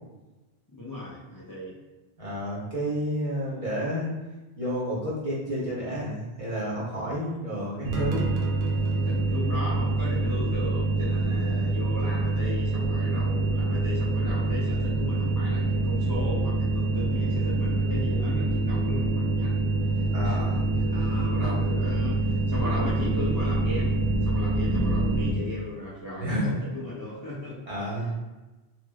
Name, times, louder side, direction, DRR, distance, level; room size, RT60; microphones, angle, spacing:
voice 1, 0.7-1.8 9.0-27.7, left 1 dB, 30° left, -8 dB, 0.4 m, -36 dB
voice 2, 2.2-4.1 4.6-8.3 20.1-20.6 21.2-21.5 26.2-26.5 27.7-28.1, equal, 35° right, -7 dB, 0.9 m, -30 dB
sound 1, 7.9-25.3, right 2 dB, 80° right, 0.8 m, -26 dB
3.0 x 2.9 x 2.3 m, 1.1 s
omnidirectional pair, 1.1 m